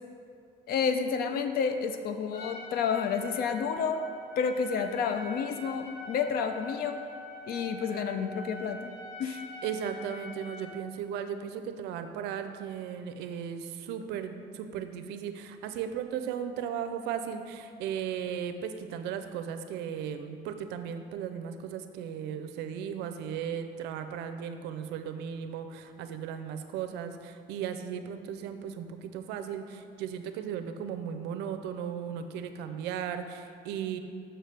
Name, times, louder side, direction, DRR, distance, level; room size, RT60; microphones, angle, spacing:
voice 1, 0.7-4.0 4.4-7.0 7.5-8.9 9.2-9.4, left 6 dB, 65° left, 8 dB, 0.5 m, -30 dB
Trumpet, 2.3-10.7, left 1 dB, 90° left, 1.2 m, -44 dB
voice 2, 9.6-34.0, right 8 dB, 90° right, 8 dB, 0.5 m, -36 dB
6.5 x 5.9 x 3.3 m, 2.4 s
cardioid pair, 110°, 17 cm